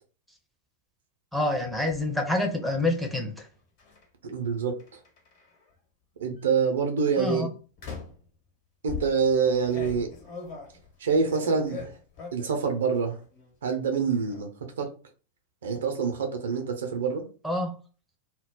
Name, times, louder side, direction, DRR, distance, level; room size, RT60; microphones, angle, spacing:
voice 1, 1.3-3.5 7.2-7.5 17.4-17.8, left 1 dB, ahead, 0.6 m, -27 dB
sound 1, 1.5-2.1 3.8-4.0 4.8-5.6 6.4-6.7 7.8-8.3 8.9-12.6 13.0-13.5 13.8-14.4, left 5 dB, 45° left, 1.0 m, -41 dB
voice 2, 4.2-5.0 6.2-7.5 8.8-10.1 11.0-11.9 12.3-13.2 13.6-14.9 15.6-17.2, right 5 dB, 65° right, 0.5 m, -26 dB
2.2 x 2.0 x 3.8 m
figure-of-eight pair, 90°, 0 cm